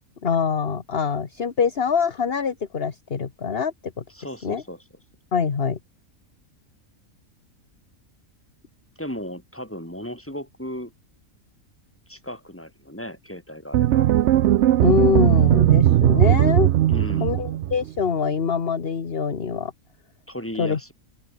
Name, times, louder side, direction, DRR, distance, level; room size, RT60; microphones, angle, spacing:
voice 1, 0.2-4.0 4.4-4.6 5.3-5.8 14.8-16.7 17.2-19.7 20.6-20.9, left 6 dB, 45° left, 1.6 m, -24 dB
voice 2, 4.1-4.8 9.0-10.9 12.1-14.1 16.9-17.5 20.3-20.9, equal, 10° left, 6.9 m, -35 dB
sound 1, 13.7-18.0, right 12 dB, 65° right, 0.8 m, -18 dB
open air
omnidirectional pair, 1.5 m